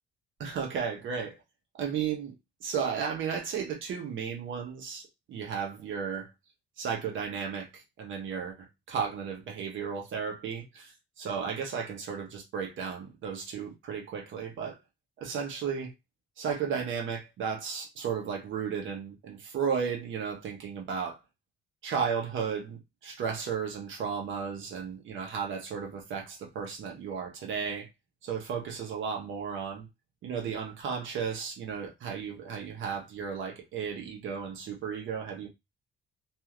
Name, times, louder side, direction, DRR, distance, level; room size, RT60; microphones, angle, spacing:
voice 1, 0.4-1.4 1.8-2.3 2.6-6.3 6.8-10.9 11.2-14.8 15.2-15.9 16.4-21.2 21.8-27.9 28.2-29.9 30.2-35.5, right 6 dB, 75° right, 1.1 m, -34 dB
2.8 x 2.7 x 2.4 m
cardioid pair, 90°, 20 cm